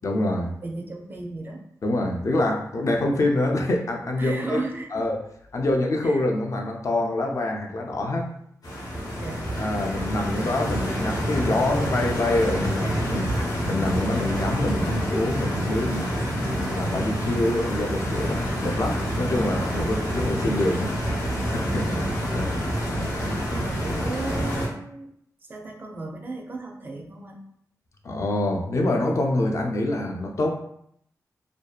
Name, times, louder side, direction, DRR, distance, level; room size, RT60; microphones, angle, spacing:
voice 1, 0.0-0.5 1.8-4.6 4.9-5.2 5.5-8.3 9.6-13.3 13.6-20.9 21.4-21.8 22.3-22.5 28.0-30.5, left 1 dB, 50° left, 2 dB, 0.4 m, -25 dB
voice 2, 0.6-1.7 4.2-5.1 6.0-6.2 9.2-9.5 13.1-13.4 13.9-14.0 19.7-20.0 21.7-22.0 23.5-25.1 25.4-27.5, right 2 dB, 30° right, 2 dB, 0.4 m, -35 dB
Stream, 8.6-24.7, equal, 80° left, 0.8 m, -27 dB
2.6 x 2.2 x 2.3 m, 0.71 s
wide cardioid pair, 140°, 6 cm